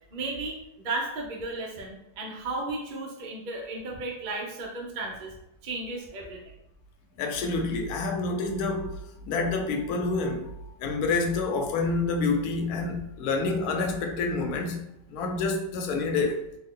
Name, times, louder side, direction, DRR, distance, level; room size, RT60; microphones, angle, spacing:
voice 1, 0.1-5.3 5.6-6.4, right 2 dB, 75° right, 0.4 m, -34 dB
voice 2, 7.2-9.0 9.2-10.5 10.8-14.8 15.1-16.4, left 3 dB, 70° left, 1.0 m, -28 dB
3.4 x 2.3 x 3.6 m
omnidirectional pair, 1.9 m